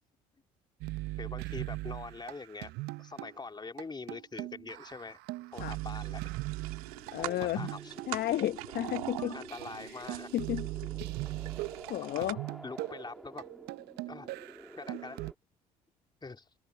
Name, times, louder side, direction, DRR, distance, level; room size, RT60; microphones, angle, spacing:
sound 1, 0.8-3.3 3.8-3.9 4.1-8.1 8.6-8.7 8.9-15.3, right 20 dB, 65° right, 0.8 m, -40 dB
voice 1, 1.2-2.7 3.0-5.2 5.5-6.4 7.2-7.9 9.2-10.3 12.0-12.3 12.6-13.4 14.1-14.3 14.8-15.2 16.2-16.5, left 4 dB, 25° left, 3.6 m, -44 dB
sound 2, 5.5-12.3, right 20 dB, 80° right, 3.5 m, -44 dB
sound 3, 6.6-15.4, equal, ahead, 2.8 m, -51 dB
voice 2, 7.1-7.7 8.1-9.4 10.3-10.7 11.9-12.4, left 13 dB, 55° left, 1.1 m, -32 dB
open air
hypercardioid pair, 55°, 19 cm